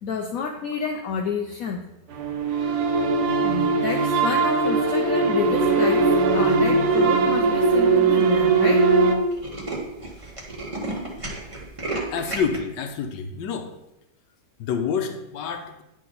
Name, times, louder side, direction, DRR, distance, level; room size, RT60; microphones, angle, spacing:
voice 1, 0.0-1.8 3.4-6.1 6.3-8.9, left 5 dB, 65° left, 2 dB, 0.9 m, -29 dB
sound 1, 2.1-9.1, right 3 dB, 65° right, 1.3 m, -20 dB
Tools, 6.5-6.9 7.5-7.6 7.9-8.0 8.2-8.4 8.7-8.8 9.1-12.6, right 2 dB, 20° right, 1.3 m, -33 dB
voice 2, 12.1-13.7 14.6-15.8, left 6 dB, 85° left, 5 dB, 1.4 m, -28 dB
10.0 x 3.8 x 3.9 m, 0.88 s
omnidirectional pair, 1.8 m